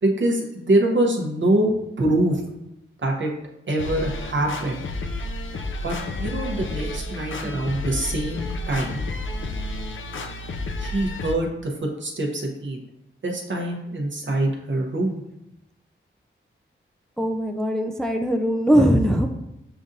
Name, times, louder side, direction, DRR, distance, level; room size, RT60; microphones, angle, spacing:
voice 1, 0.0-1.7 2.0-2.4 3.0-3.3 3.7-4.9 5.8-9.0 10.8-11.7 12.0-12.8 13.2-15.2, right 1 dB, 65° right, 1 dB, 0.9 m, -24 dB
sound 1, 3.8-11.4, left 2 dB, 70° left, 0.5 m, -31 dB
voice 2, 17.2-19.3, equal, 5° left, 4 dB, 0.3 m, -20 dB
6.8 x 2.5 x 2.6 m, 0.85 s
wide cardioid pair, 75°, 21 cm